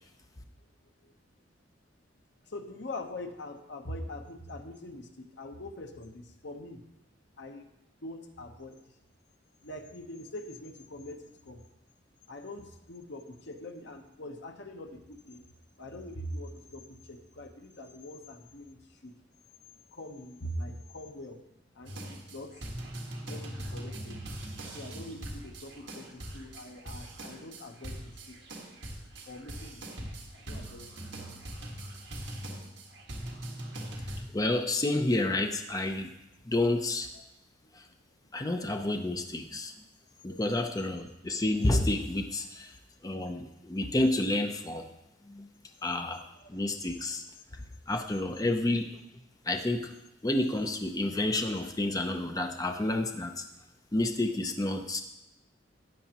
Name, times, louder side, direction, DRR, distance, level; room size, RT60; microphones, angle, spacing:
voice 1, 2.5-6.8 7.4-7.7 8.0-8.8 9.6-11.6 12.3-15.4 15.8-19.1 19.9-21.4 21.7-22.6 23.2-24.2 24.7-28.4 29.3-30.1 30.3-30.9 37.1-37.2 37.6-37.8 40.3-40.4 46.1-46.5, left 1 dB, 65° left, 5 dB, 1.0 m, -43 dB
sound 1, 21.9-34.2, right 1 dB, 65° right, 1.7 m, -41 dB
voice 2, 34.3-36.1 36.5-37.1 37.7-37.8 38.3-39.7 40.2-42.7 43.0-44.9 45.3-45.5 45.8-46.2 46.5-47.2 47.9-48.9 49.5-49.9 50.2-53.4 53.9-55.0, left 2 dB, 20° left, 5 dB, 0.6 m, -29 dB
12.5 x 9.3 x 3.0 m, 0.89 s
head